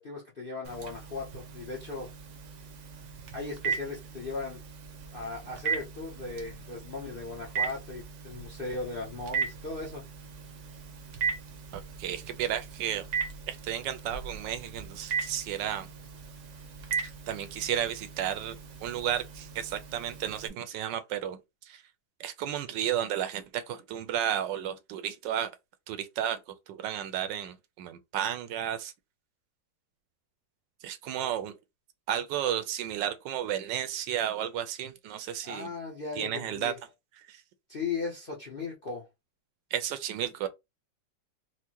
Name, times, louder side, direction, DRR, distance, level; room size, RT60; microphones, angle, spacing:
voice 1, 0.0-2.1 3.3-4.6 5.1-10.0 35.4-36.7 37.7-39.1, left 3 dB, 50° left, 0.6 m, -37 dB
Telephone, 0.6-20.5, right 6 dB, 60° right, 0.8 m, -38 dB
voice 2, 11.7-13.1 13.5-15.9 17.0-21.8 22.2-25.5 25.9-28.9 30.8-31.6 32.1-35.7 36.2-36.7 37.2-37.4 39.7-40.5, right 10 dB, 80° right, 1.2 m, -33 dB
4.5 x 2.1 x 2.8 m
omnidirectional pair, 2.0 m